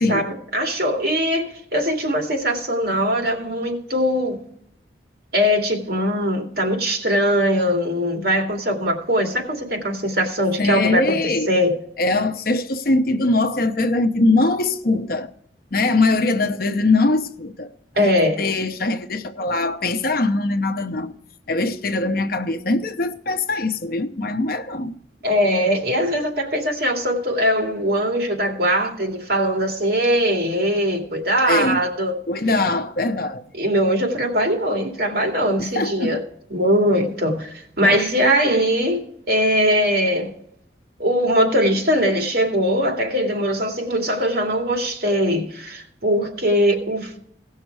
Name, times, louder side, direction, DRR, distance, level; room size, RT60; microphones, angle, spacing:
voice 1, 0.1-4.4 5.3-11.2 11.5-11.7 18.0-18.4 25.2-32.2 33.6-36.2 36.5-40.3 41.0-47.2, equal, 60° right, 2.4 m, -21 dB
voice 2, 10.6-11.5 12.0-15.3 15.7-17.7 18.0-21.1 21.5-24.9 31.5-31.8 32.3-33.4 35.6-36.2 37.8-38.0, left 2 dB, 55° left, 0.8 m, -22 dB
17.0 x 6.4 x 4.7 m
head